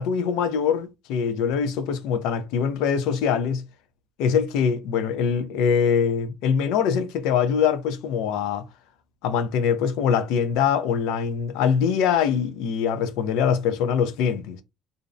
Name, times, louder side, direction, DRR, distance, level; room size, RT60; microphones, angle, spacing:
voice 1, 0.0-3.6 4.2-8.7 9.2-14.6, left 7 dB, 85° left, 0.4 m, -23 dB
2.5 x 2.0 x 2.5 m
cardioid pair, 140°, 0 cm